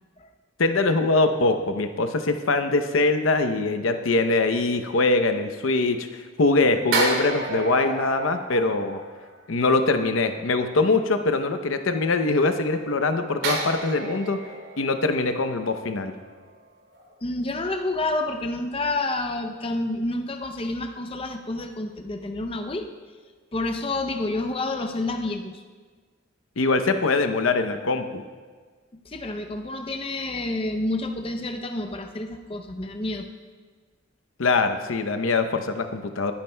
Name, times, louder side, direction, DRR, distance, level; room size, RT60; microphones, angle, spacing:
voice 1, 0.6-6.1 6.4-9.0 9.5-14.4 14.8-16.1 26.6-28.2 34.4-36.3, left 3 dB, 80° left, 8 dB, 0.7 m, -23 dB
sound 1, 6.9-9.6 13.4-16.6 16.9-17.1, right 2 dB, 85° right, 3.2 m, -31 dB
voice 2, 17.2-22.9 23.5-25.6 29.1-33.3, left 2 dB, 25° left, 5 dB, 0.5 m, -29 dB
20.0 x 10.0 x 2.2 m, 1.5 s
head